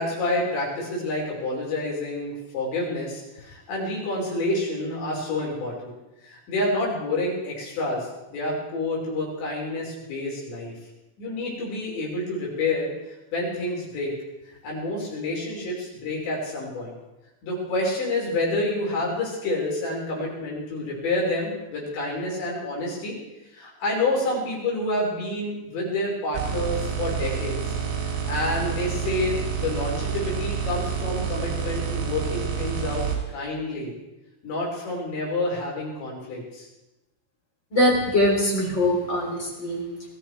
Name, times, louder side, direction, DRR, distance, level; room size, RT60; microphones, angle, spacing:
voice 1, 0.0-6.0 6.2-10.7 11.2-14.1 14.6-16.9 17.4-23.2 23.5-27.8 28.3-33.9 34.4-36.7, left 2 dB, 70° left, -3 dB, 7.3 m, -28 dB
sound 1, 26.3-33.2, right 7 dB, 80° right, 6.0 m, -28 dB
voice 2, 37.7-39.8, left 1 dB, 25° left, -2 dB, 3.8 m, -22 dB
21.5 x 13.5 x 4.8 m, 0.98 s
omnidirectional pair, 5.4 m